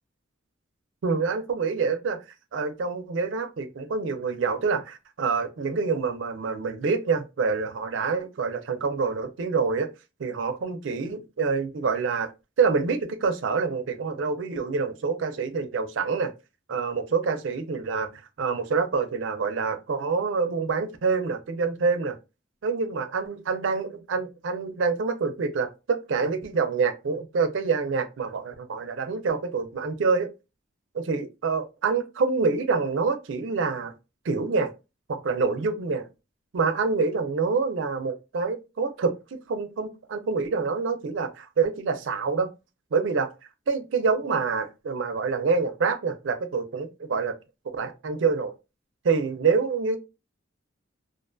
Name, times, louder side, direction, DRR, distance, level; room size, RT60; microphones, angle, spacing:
voice 1, 1.0-2.2 2.5-9.9 10.2-12.3 12.6-16.3 16.7-18.1 18.4-22.2 22.6-30.3 30.9-33.9 34.2-34.7 35.1-36.1 36.5-39.1 39.5-42.5 42.9-43.3 43.7-47.3 47.7-48.5 49.0-50.0, right 4 dB, 70° right, 0.4 m, -26 dB
2.4 x 2.2 x 2.4 m
head